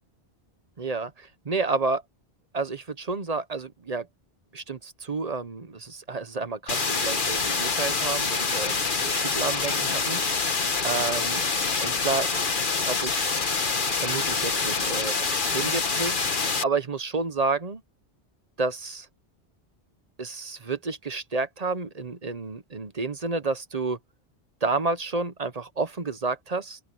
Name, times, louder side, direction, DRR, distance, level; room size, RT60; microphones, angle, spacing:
voice 1, 0.8-2.0 2.5-4.1 4.5-10.6 10.8-11.4 11.8-12.3 12.7-13.3 14.0-17.8 18.6-19.1 20.2-24.0 24.6-26.8, right 3 dB, 40° right, 1.0 m, -30 dB
sound 1, 6.7-16.6, left 4 dB, 50° left, 1.5 m, -26 dB
open air
omnidirectional pair, 1.1 m